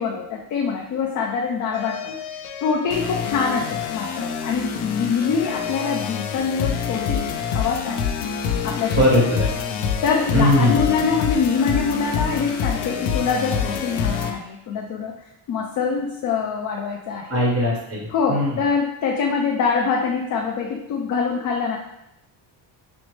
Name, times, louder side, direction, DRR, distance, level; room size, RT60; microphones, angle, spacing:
voice 1, 0.0-2.2 2.6-7.2 7.5-8.1 8.6-9.1 10.0-15.1 15.5-17.4 18.1-21.8, left 5 dB, 45° left, 0 dB, 0.5 m, -24 dB
sound 1, 1.7-14.3, left 7 dB, 90° left, 0.6 m, -26 dB
voice 2, 9.0-9.5 10.3-10.9 17.3-18.6, left 1 dB, 30° right, -4 dB, 1.4 m, -19 dB
6.1 x 2.1 x 3.1 m, 0.83 s
cardioid pair, 145°, 45 cm